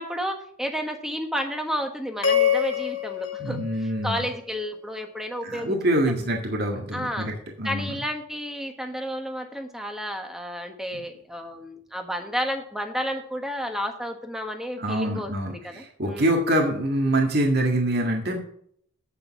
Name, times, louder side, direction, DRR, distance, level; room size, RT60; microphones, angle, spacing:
voice 1, 0.0-5.8 6.9-7.3 7.6-16.4, equal, ahead, 5 dB, 1.3 m, -31 dB
sound 1, 2.2-4.6, left 8 dB, 80° left, 1.5 m, -26 dB
voice 2, 3.4-4.2 5.4-7.3 7.6-8.0 14.8-18.4, right 1 dB, 55° right, 1 dB, 1.8 m, -25 dB
8.7 x 6.8 x 6.8 m, 0.64 s
head